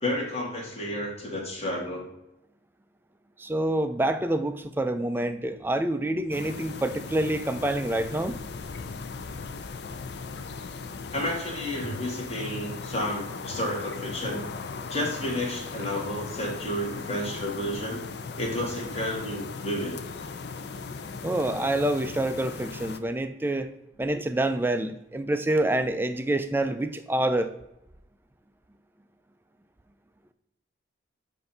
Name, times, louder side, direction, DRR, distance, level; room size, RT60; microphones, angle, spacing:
voice 1, 0.0-2.1 11.1-14.4 14.9-18.0 18.4-20.0, left 1 dB, 30° left, -1 dB, 1.5 m, -31 dB
voice 2, 3.4-8.4 21.2-23.7 24.0-27.5, right 1 dB, 10° right, 9 dB, 0.3 m, -27 dB
sound 1, 6.3-23.0, left 4 dB, 55° left, 0.4 m, -38 dB
7.9 x 2.7 x 5.4 m, 0.86 s
head